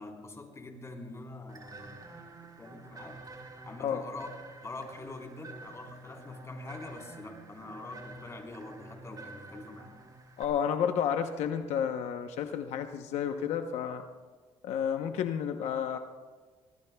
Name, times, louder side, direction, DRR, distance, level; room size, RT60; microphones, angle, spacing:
voice 1, 0.0-2.0 2.4-3.2 3.6-4.4 4.6-10.1, left 2 dB, 25° left, 1 dB, 3.9 m, -44 dB
sound 1, 1.5-10.4, right 3 dB, 35° right, 3.5 m, -49 dB
voice 2, 10.4-14.0 14.6-16.0, left 8 dB, 80° left, 6 dB, 0.9 m, -31 dB
24.5 x 19.0 x 2.3 m, 1.4 s
cardioid pair, 90°, 11 cm